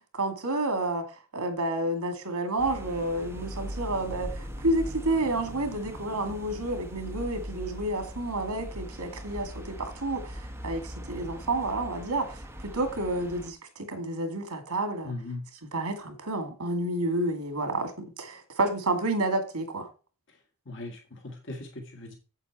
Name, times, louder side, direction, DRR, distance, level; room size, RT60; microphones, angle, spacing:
voice 1, 0.1-1.0 1.3-15.1 15.7-19.9, right 2 dB, 90° right, 2.3 m, -30 dB
sound 1, 2.6-13.5, equal, 10° right, 1.2 m, -40 dB
voice 2, 15.0-15.4 20.7-22.1, left 2 dB, 60° left, 1.8 m, -39 dB
8.1 x 7.9 x 4.2 m
head